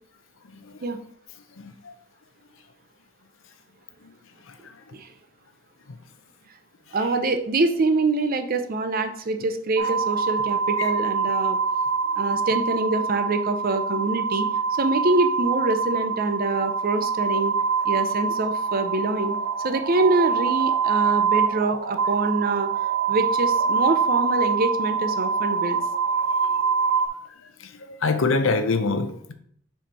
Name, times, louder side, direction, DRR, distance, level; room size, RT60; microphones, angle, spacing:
voice 1, 1.6-1.9 10.8-10.9 26.4-26.7 27.8-29.3, left 3 dB, 70° left, 9 dB, 0.7 m, -25 dB
voice 2, 6.9-11.6 12.2-17.6 17.9-19.3 19.6-22.7 23.1-25.8, right 2 dB, 45° right, 8 dB, 0.6 m, -25 dB
sound 1, 9.8-27.1, right 5 dB, 90° right, 0.5 m, -24 dB
5.5 x 4.4 x 4.3 m, 0.66 s
head